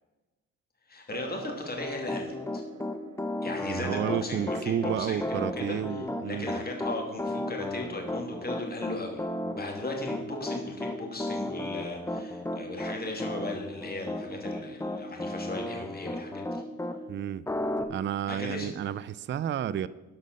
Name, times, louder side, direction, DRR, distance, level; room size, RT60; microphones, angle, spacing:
voice 1, 0.9-2.6 3.4-9.2 9.5-16.6 18.3-18.9, left 2 dB, 30° left, 2.8 m, -37 dB
sound 1, 1.1-9.1, right 7 dB, 60° right, 1.0 m, -50 dB
Piano, 1.8-17.0 17.5-17.8, left 1 dB, 10° left, 0.9 m, -34 dB
voice 2, 3.7-6.6 17.1-17.5 17.9-19.9, right 9 dB, 40° right, 0.4 m, -31 dB
12.0 x 5.3 x 6.4 m
cardioid pair, 90°, 30 cm